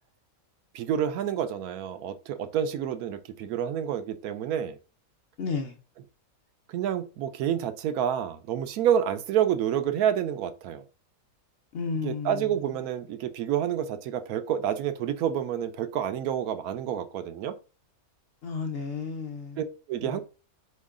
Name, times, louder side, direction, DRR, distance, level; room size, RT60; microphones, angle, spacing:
voice 1, 0.7-4.8 6.7-10.8 12.0-17.6 19.6-20.2, right 9 dB, 90° right, 1.1 m, -28 dB
voice 2, 5.4-5.8 11.7-12.5 18.4-19.6 20.0-20.2, left 5 dB, 60° left, 0.7 m, -32 dB
4.3 x 3.1 x 3.6 m
omnidirectional pair, 1.5 m